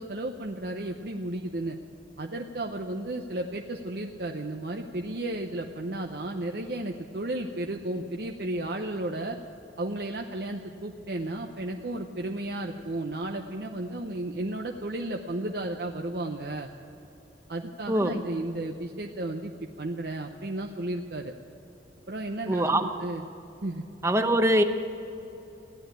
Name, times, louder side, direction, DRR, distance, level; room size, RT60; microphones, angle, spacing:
voice 1, 0.0-1.8 2.2-9.4 9.8-16.7 17.5-19.5 19.8-21.3 22.1-23.2 23.6-23.8, right 1 dB, 60° right, 3 dB, 0.7 m, -33 dB
voice 2, 22.5-22.9 24.0-24.6, right 1 dB, 15° right, 7 dB, 0.8 m, -23 dB
15.5 x 10.5 x 9.0 m, 2.8 s
head